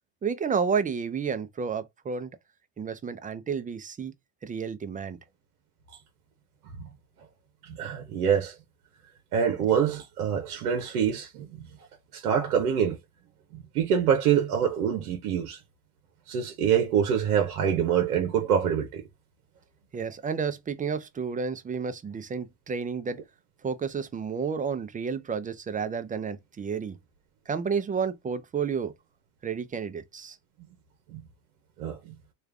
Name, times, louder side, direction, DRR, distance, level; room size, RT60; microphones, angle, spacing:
voice 1, 0.2-2.3 2.8-4.1 4.4-5.2 19.9-23.2 23.6-27.0 27.5-28.9 29.4-30.4, right 6 dB, 20° right, 0.5 m, -31 dB
voice 2, 7.7-8.5 9.3-11.5 12.1-13.0 13.7-15.6 16.3-19.0 31.1-31.2 31.8-32.0, right 8 dB, 75° right, 0.9 m, -25 dB
3.2 x 2.5 x 3.4 m
hypercardioid pair, 85°, 44 cm